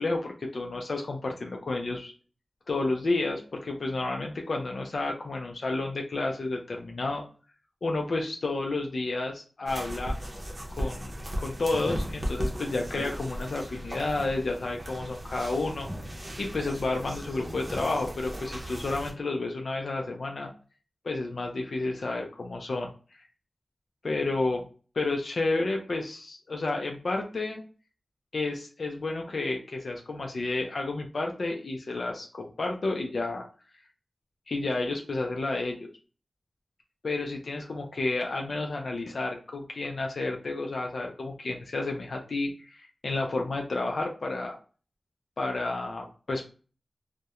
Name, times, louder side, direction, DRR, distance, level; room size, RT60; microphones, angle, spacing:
voice 1, 0.0-2.1 2.7-7.2 7.8-10.2 10.7-15.9 16.4-20.5 21.0-22.9 24.0-24.6 25.0-27.6 28.3-33.4 34.5-35.9 37.0-44.6 45.4-46.5, left 2 dB, 80° left, 1 dB, 0.4 m, -31 dB
sound 1, 9.7-19.1, equal, 35° right, 0.6 m, -36 dB
2.3 x 2.0 x 2.8 m, 0.37 s
wide cardioid pair, 65°, 0 cm